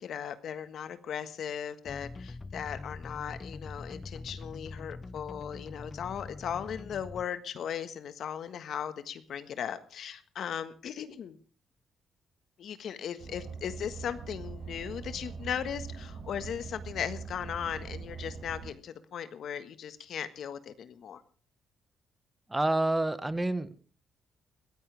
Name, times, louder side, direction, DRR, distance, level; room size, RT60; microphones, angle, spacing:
voice 1, 0.0-11.4 12.6-21.2, left 8 dB, 65° left, 11 dB, 1.5 m, -37 dB
sound 1, 1.9-7.2, left 3 dB, 25° left, 0.8 m, -43 dB
Car, 13.2-18.7, right 5 dB, 70° right, 4.7 m, -42 dB
voice 2, 22.5-23.8, right 2 dB, 15° right, 13 dB, 1.4 m, -28 dB
22.0 x 15.5 x 3.4 m, 0.38 s
cardioid pair, 90°, 0 cm